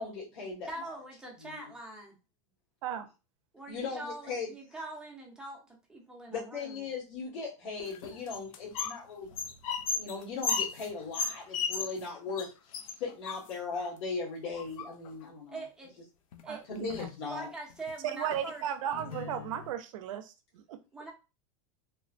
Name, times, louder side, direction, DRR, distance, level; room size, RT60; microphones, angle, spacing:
voice 1, 0.0-1.0 1.4-1.7 3.7-4.8 6.3-9.3 9.9-12.5 12.8-15.6 16.7-17.5, left 4 dB, 60° left, -5 dB, 1.3 m, -38 dB
voice 2, 0.6-2.2 3.5-6.8 15.5-15.9 16.4-16.7 17.3-18.6 20.9-21.1, right 2 dB, 5° right, -1 dB, 0.5 m, -43 dB
sound 1, 7.9-9.0 9.3-12.1 12.4-12.5 12.7-13.9 14.5-15.2 16.3-16.4 16.7-17.2 17.7-17.9 18.3-18.4 18.9-19.7, left 5 dB, 75° left, 0.5 m, -35 dB
voice 3, 16.5-17.1 18.1-20.8, right 10 dB, 70° right, 10 dB, 0.5 m, -36 dB
3.1 x 2.1 x 2.4 m, 0.29 s
supercardioid pair, 160°, 17 cm